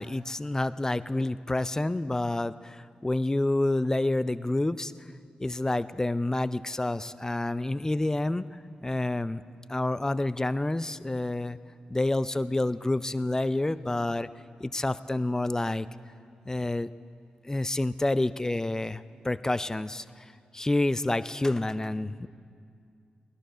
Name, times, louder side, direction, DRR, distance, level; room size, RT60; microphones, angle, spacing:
voice 1, 0.0-4.9 5.4-8.4 8.8-9.4 9.7-11.6 11.9-14.3 14.6-15.9 16.5-16.9 17.4-20.0 20.5-22.3, left 2 dB, 20° left, 15 dB, 0.4 m, -28 dB
18.5 x 11.0 x 4.6 m, 2.3 s
supercardioid pair, 45°, 3 cm